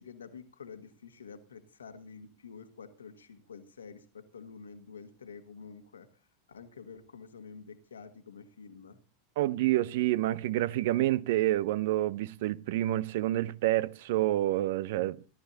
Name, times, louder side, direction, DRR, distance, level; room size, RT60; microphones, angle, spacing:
voice 1, 0.0-6.1 6.5-9.0, left 5 dB, 75° left, 1.6 m, -48 dB
voice 2, 9.4-15.2, right 15 dB, 55° right, 0.6 m, -28 dB
18.0 x 12.0 x 2.8 m
figure-of-eight pair, 85°, 0 cm